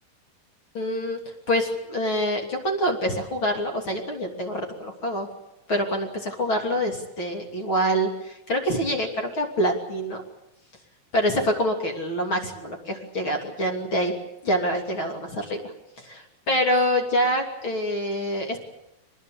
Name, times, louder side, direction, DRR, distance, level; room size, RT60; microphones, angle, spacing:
voice 1, 0.7-1.2 1.5-5.3 5.7-10.2 11.1-14.1 14.4-18.6, equal, 35° left, 2 dB, 3.3 m, -26 dB
25.5 x 20.0 x 8.6 m, 0.89 s
omnidirectional pair, 4.6 m